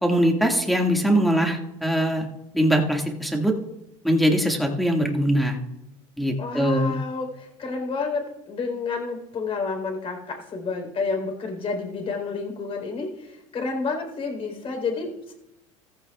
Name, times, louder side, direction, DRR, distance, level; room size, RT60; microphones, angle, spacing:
voice 1, 0.0-2.3 2.5-3.5 4.0-5.6 6.2-6.9, equal, ahead, 0 dB, 2.1 m, -22 dB
voice 2, 6.4-15.3, left 4 dB, 35° left, 3 dB, 4.2 m, -30 dB
15.0 x 14.5 x 2.4 m, 0.88 s
supercardioid pair, 95°, 16 cm